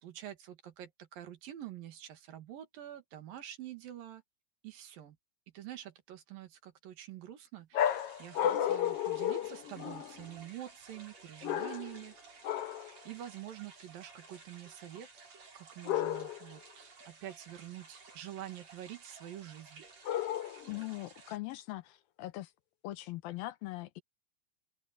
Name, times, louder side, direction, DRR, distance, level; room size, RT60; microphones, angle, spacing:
voice 1, 0.0-4.2 4.6-5.2 5.5-12.2 12.8-15.2 15.6-19.8, right 12 dB, 75° right, 3.6 m, -47 dB
sound 1, 7.7-10.2 11.4-12.1 12.4-12.9 15.8-16.5 20.0-20.8, left 11 dB, 65° left, 1.5 m, -33 dB
sound 2, 7.8-21.4, right 4 dB, 45° right, 6.4 m, -56 dB
voice 2, 20.7-22.5 22.8-24.0, left 17 dB, 90° left, 2.9 m, -41 dB
omnidirectional pair, 4.1 m